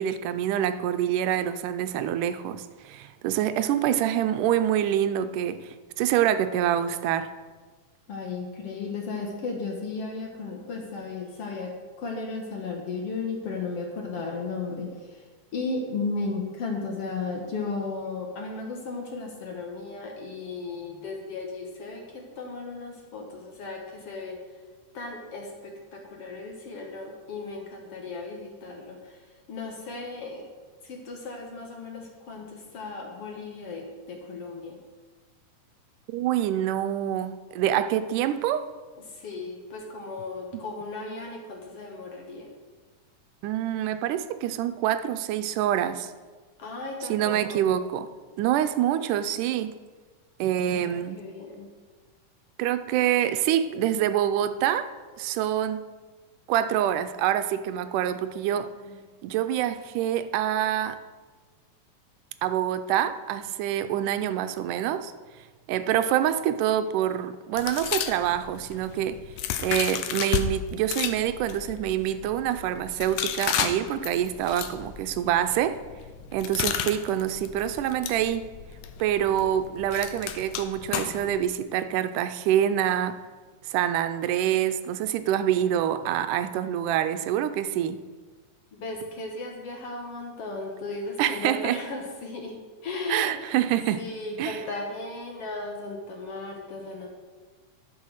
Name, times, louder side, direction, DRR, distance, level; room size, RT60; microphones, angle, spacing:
voice 1, 0.0-7.3 36.1-38.7 40.5-40.6 43.4-46.1 47.1-48.1 48.4-49.7 50.4-51.2 52.6-54.9 55.2-55.8 56.5-58.7 59.2-61.0 62.4-65.1 65.7-69.2 69.6-75.8 76.3-78.4 79.0-83.2 83.6-88.0 91.2-91.8 93.1-94.0 94.4-94.6, right 11 dB, 85° right, 10 dB, 2.1 m, -26 dB
voice 2, 8.1-15.2 15.5-24.4 24.9-29.2 29.5-30.5 30.8-34.8 39.2-42.5 46.6-47.6 50.6-51.7 58.8-59.0 88.7-93.3 94.0-97.1, left 3 dB, 55° left, 1 dB, 1.9 m, -35 dB
sound 1, 67.6-70.5 70.9-81.4, left 9 dB, 85° left, 2.3 m, -33 dB
12.0 x 6.4 x 6.4 m, 1.4 s
omnidirectional pair, 3.7 m